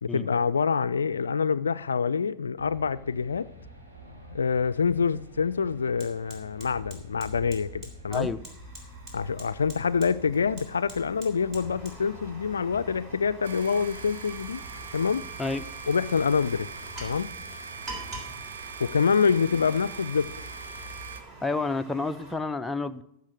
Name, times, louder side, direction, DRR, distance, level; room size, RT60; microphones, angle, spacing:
voice 1, 0.0-3.5 4.3-8.3 9.1-14.6 14.9-15.2 15.9-16.7 17.0-17.4 18.8-20.3, left 6 dB, 70° left, 0.3 m, -26 dB
sound 1, 2.5-21.2, right 1 dB, 90° right, 4.0 m, -48 dB
Fire, 4.9-5.0 5.3-22.3, right 2 dB, 30° right, 3.4 m, -47 dB
voice 2, 8.1-8.4 15.4-15.6 21.4-23.0, left 3 dB, 10° left, 0.5 m, -29 dB
sound 2, 13.4-21.2, right 6 dB, 65° right, 1.0 m, -41 dB
14.5 x 5.2 x 6.4 m
figure-of-eight pair, 90°, 0 cm